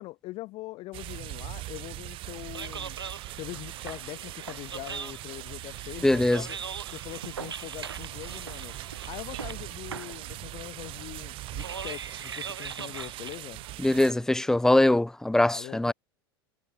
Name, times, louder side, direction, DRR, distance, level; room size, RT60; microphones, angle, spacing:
voice 1, 0.0-3.0 3.3-6.6 6.9-8.7 9.0-13.6 15.5-15.9, left 19 dB, 45° left, 3.0 m, -42 dB
sound 1, 0.9-14.1, right 17 dB, 40° right, 3.9 m, -41 dB
sound 2, 2.3-14.5, right 6 dB, 75° right, 6.5 m, -42 dB
voice 2, 6.0-6.4 13.8-15.9, left 1 dB, 5° left, 0.8 m, -22 dB
figure-of-eight pair, 80°, 13 cm